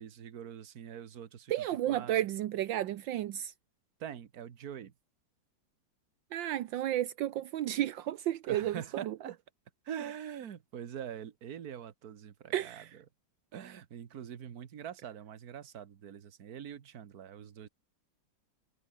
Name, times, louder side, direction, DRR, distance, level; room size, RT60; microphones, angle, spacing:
voice 1, 0.0-2.2 4.0-4.9 8.4-9.4 9.9-13.1 13.5-17.7, right 9 dB, 55° right, 1.7 m, -44 dB
voice 2, 1.5-3.5 6.3-8.7 9.1-9.2 12.5-12.9, right 12 dB, 75° right, 1.5 m, -32 dB
omnidirectional pair, 2.1 m